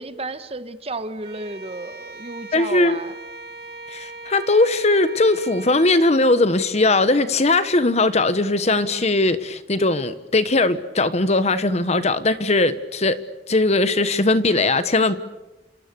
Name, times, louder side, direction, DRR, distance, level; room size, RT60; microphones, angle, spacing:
voice 1, 0.0-3.1, right 2 dB, 35° right, 1.3 m, -32 dB
Bowed string instrument, 1.2-6.1, right 3 dB, 65° right, 2.5 m, -39 dB
voice 2, 2.5-3.0 3.9-13.2 13.5-15.2, left 2 dB, 40° left, 1.2 m, -19 dB
28.5 x 26.5 x 6.9 m
head